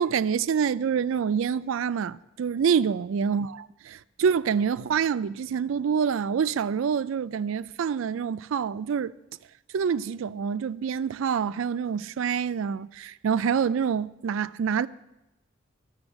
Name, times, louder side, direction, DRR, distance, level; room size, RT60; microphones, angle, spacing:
voice 1, 0.0-9.1 9.7-14.9, right 7 dB, 80° right, 0.3 m, -26 dB
11.5 x 7.0 x 7.1 m
head